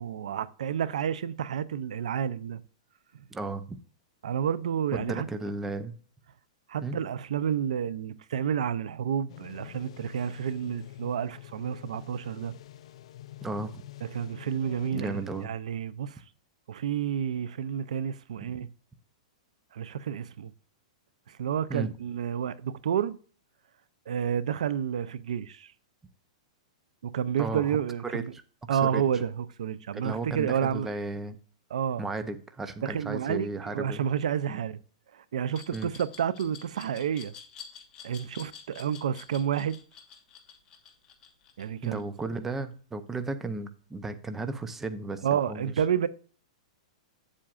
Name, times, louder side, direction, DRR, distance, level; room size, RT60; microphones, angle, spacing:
voice 1, 0.0-2.6 4.2-5.3 6.7-12.5 14.1-16.2 16.7-18.7 19.7-20.5 21.3-23.2 24.1-25.7 27.0-28.3 28.7-30.9 31.7-32.1 32.8-34.8 35.1-37.3 38.0-39.8 41.6-42.0 45.2-46.1, right 8 dB, 80° right, 0.5 m, -30 dB
voice 2, 3.3-3.8 4.9-5.9 6.8-7.0 13.4-13.8 14.9-15.5 21.7-21.9 27.4-27.8 28.0-28.4 28.7-29.0 29.9-31.4 32.0-34.0 34.5-34.6 35.7-35.9 41.8-45.6, right 3 dB, 10° right, 0.5 m, -34 dB
sound 1, 9.3-15.5, left 13 dB, 60° left, 0.3 m, -47 dB
Glass, 35.5-42.4, left 7 dB, 20° left, 1.3 m, -48 dB
8.4 x 7.5 x 2.4 m
supercardioid pair, 160°, 4 cm